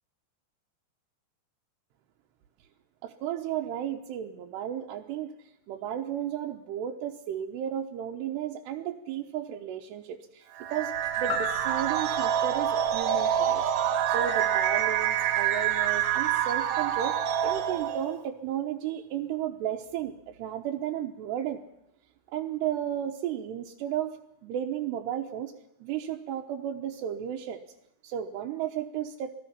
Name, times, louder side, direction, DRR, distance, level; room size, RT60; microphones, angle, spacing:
voice 1, 3.0-5.3 5.7-10.9 11.2-21.6 22.3-24.2 24.4-25.5 25.8-27.6 28.0-29.3, right 10 dB, 80° right, 2 dB, 3.1 m, -34 dB
sound 1, 10.6-18.2, right 10 dB, 60° right, 2.6 m, -27 dB
sound 2, 11.3-15.4 15.8-15.9, left 11 dB, 75° left, 1.7 m, -42 dB
29.5 x 20.5 x 5.7 m, 0.82 s
omnidirectional pair, 4.9 m